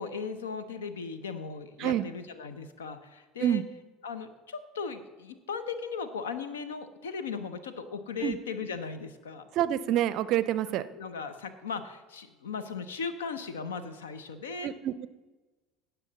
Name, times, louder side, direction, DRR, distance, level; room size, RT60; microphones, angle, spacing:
voice 1, 0.0-3.6 4.0-9.5 10.9-14.7, left 5 dB, 75° left, 11 dB, 0.7 m, -37 dB
voice 2, 9.5-10.9 14.6-15.1, right 11 dB, 50° right, 16 dB, 0.4 m, -27 dB
17.0 x 5.8 x 4.0 m, 1.2 s
figure-of-eight pair, 65°, 0 cm